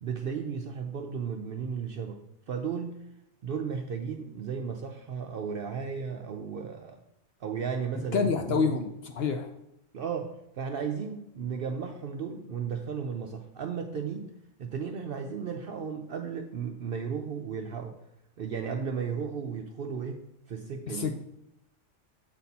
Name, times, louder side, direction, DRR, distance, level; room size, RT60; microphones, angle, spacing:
voice 1, 0.0-2.2 2.5-3.1 3.4-7.0 7.4-8.7 9.9-14.3 14.6-18.0 18.4-21.1, right 6 dB, 65° right, 4 dB, 0.6 m, -34 dB
voice 2, 8.1-9.5 20.9-21.1, left 5 dB, 65° left, 6 dB, 0.7 m, -27 dB
7.8 x 4.2 x 4.1 m, 0.82 s
omnidirectional pair, 1.4 m